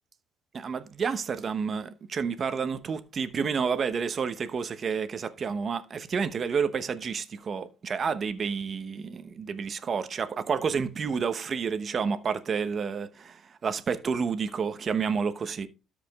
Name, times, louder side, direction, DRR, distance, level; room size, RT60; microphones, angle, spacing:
voice 1, 0.5-15.7, right 6 dB, 40° right, 1.0 m, -30 dB
13.0 x 5.1 x 3.6 m
cardioid pair, 115°, 0 cm